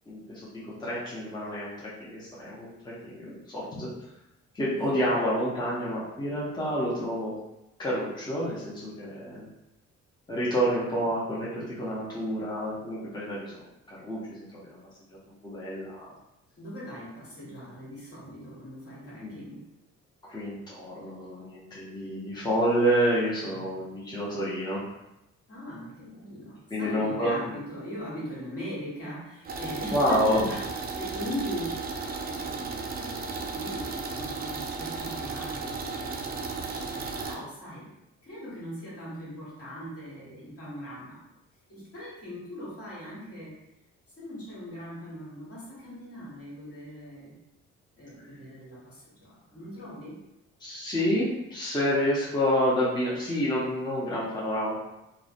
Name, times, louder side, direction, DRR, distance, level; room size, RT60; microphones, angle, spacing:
voice 1, 0.1-1.7 2.0-3.9 4.5-7.3 7.8-9.5 10.3-13.5 13.9-14.8 15.4-16.1 19.2-19.4 20.3-24.8 26.7-27.3 29.9-30.4 50.6-54.8, equal, 15° left, -8 dB, 0.6 m, -28 dB
voice 2, 16.6-19.6 23.5-23.8 25.5-30.7 30.9-37.9 38.2-41.2 41.7-43.5 44.2-47.3 47.9-50.2, equal, 50° left, -8 dB, 1.4 m, -40 dB
sound 1, 29.5-37.4, right 4 dB, 30° right, 0.4 m, -35 dB
2.4 x 2.1 x 2.5 m, 0.89 s
cardioid pair, 90°, 30 cm